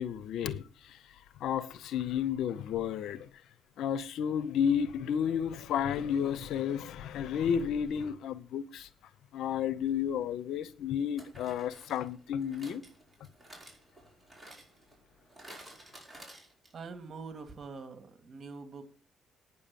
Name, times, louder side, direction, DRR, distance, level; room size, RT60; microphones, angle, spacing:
voice 1, 0.0-3.3 3.8-8.9 9.3-12.8, left 8 dB, 80° left, 0.9 m, -32 dB
sound 1, 9.9-10.0 11.2-16.9 17.2-17.3 17.5-17.6, right 1 dB, 15° right, 5.3 m, -53 dB
voice 2, 16.7-18.8, right 4 dB, 50° right, 2.4 m, -44 dB
9.7 x 7.0 x 7.0 m
cardioid pair, 80°, 0 cm